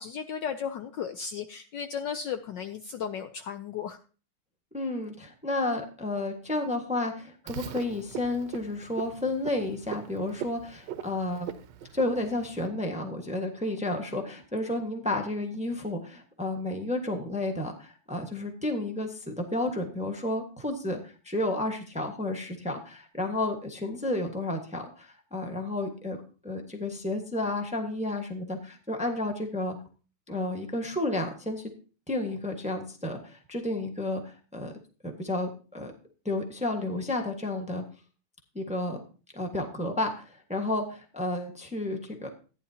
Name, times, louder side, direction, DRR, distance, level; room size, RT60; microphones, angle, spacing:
voice 1, 0.0-4.0, left 7 dB, 70° left, 9 dB, 1.1 m, -35 dB
voice 2, 4.7-11.5 11.9-29.7 30.3-31.7 32.1-34.7 35.0-35.9 36.2-37.8 38.5-39.0 39.3-42.3, left 2 dB, 5° right, 3 dB, 1.0 m, -31 dB
Frog, 7.5-12.7, right 9 dB, 65° right, 1.2 m, -41 dB
14.5 x 10.0 x 2.8 m, 0.36 s
omnidirectional pair, 2.4 m